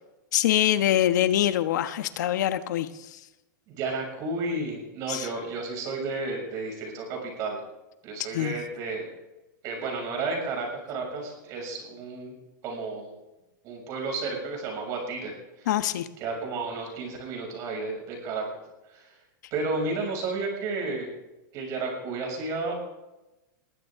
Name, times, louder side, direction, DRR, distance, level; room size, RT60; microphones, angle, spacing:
voice 1, 0.3-3.2 5.1-5.3 8.3-8.5 15.7-16.1, left 12 dB, 65° left, 10 dB, 1.2 m, -24 dB
voice 2, 3.7-7.6 8.0-9.1 9.6-12.3 12.6-13.1 13.6-15.7 16.2-18.6 18.9-19.2 19.5-21.1 21.5-22.7, right 3 dB, 35° right, 1 dB, 6.7 m, -32 dB
21.0 x 15.5 x 3.8 m, 1.0 s
supercardioid pair, 165°, 10 cm